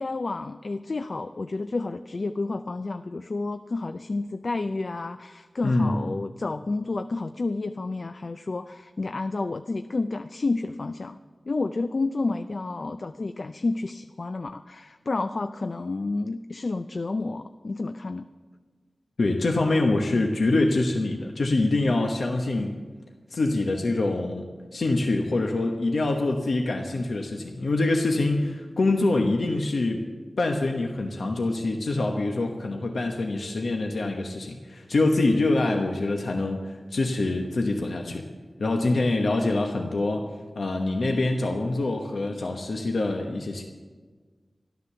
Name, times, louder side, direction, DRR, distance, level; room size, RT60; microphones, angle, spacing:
voice 1, 0.0-11.2 11.5-18.3, left 3 dB, 55° left, 9 dB, 0.4 m, -30 dB
voice 2, 19.2-22.8 23.3-24.5 24.7-30.0 30.4-38.2 38.6-40.3 40.5-43.6, left 2 dB, 80° left, 2 dB, 1.1 m, -25 dB
13.0 x 11.5 x 6.8 m, 1.4 s
wide cardioid pair, 85°, 0 cm